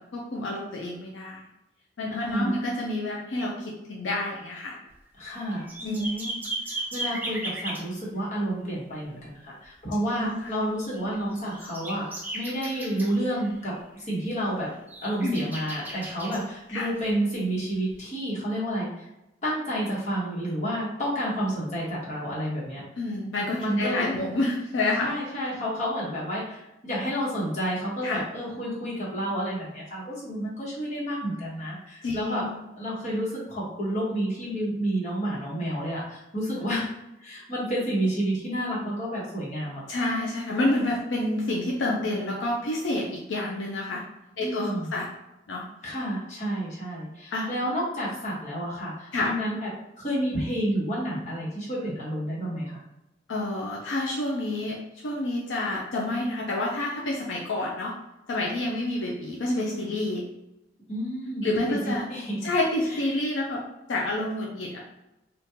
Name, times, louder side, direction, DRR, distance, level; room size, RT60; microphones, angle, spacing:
voice 1, 0.0-1.4 2.0-4.8 5.8-6.0 10.1-10.5 15.2-15.4 16.7-16.9 23.0-25.1 28.0-28.2 32.0-32.6 39.9-44.0 44.4-45.1 45.5-45.6 47.3-47.6 49.1-49.3 53.3-54.8 55.0-57.9 58.3-60.3 61.4-62.1 62.4-64.8, left 2 dB, 75° left, -2 dB, 0.5 m, -28 dB
voice 2, 2.1-2.5 5.2-6.4 6.6-12.0 12.3-14.7 15.0-19.1 19.4-22.8 23.6-24.1 25.0-32.4 32.8-36.9 37.2-39.8 44.4-44.9 45.8-49.7 50.0-52.8 60.9-62.4 62.9-63.0, equal, 40° left, -6 dB, 1.2 m, -30 dB
sound 1, 4.9-5.0 5.2-7.9 10.8-13.7 14.0-14.2 14.7-16.4 17.9-18.0, right 1 dB, 10° right, 0.6 m, -36 dB
3.6 x 2.4 x 2.8 m, 0.92 s
head